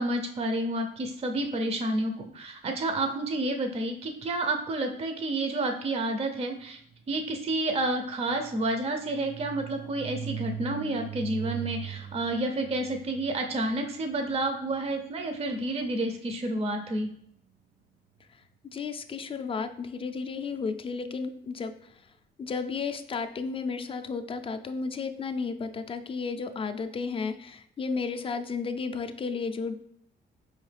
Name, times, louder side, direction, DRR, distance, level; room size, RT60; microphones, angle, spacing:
voice 1, 0.0-6.8 7.1-17.1, right 2 dB, 30° right, 5 dB, 0.5 m, -30 dB
sound 1, 6.8-16.7, right 9 dB, 90° right, 0.5 m, -42 dB
voice 2, 18.7-21.7 22.4-29.7, left 5 dB, 30° left, 8 dB, 0.4 m, -33 dB
4.5 x 3.1 x 3.3 m, 0.68 s
cardioid pair, 90°, 20 cm